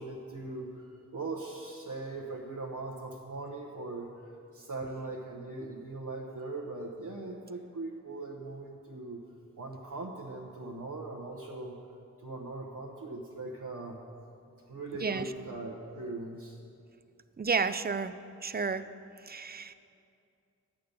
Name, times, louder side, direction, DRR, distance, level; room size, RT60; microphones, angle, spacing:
voice 1, 0.0-4.2 4.5-9.2 9.6-11.8 12.2-14.0 14.7-16.6, right 2 dB, 85° right, -2 dB, 1.0 m, -40 dB
voice 2, 17.4-18.1 18.4-18.8 19.3-19.7, right 5 dB, 30° right, 12 dB, 0.4 m, -31 dB
11.0 x 8.6 x 5.2 m, 2.5 s
wide cardioid pair, 90°, 31 cm